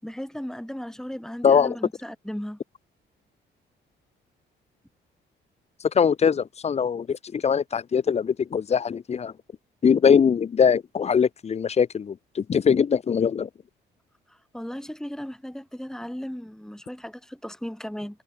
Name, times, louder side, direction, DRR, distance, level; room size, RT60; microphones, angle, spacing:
voice 1, 0.0-2.6 14.5-18.2, equal, 5° left, 5.9 m, -36 dB
voice 2, 1.4-1.8 5.9-9.3 9.8-13.5, left 7 dB, 35° left, 0.5 m, -22 dB
cardioid pair, 90°, 20 cm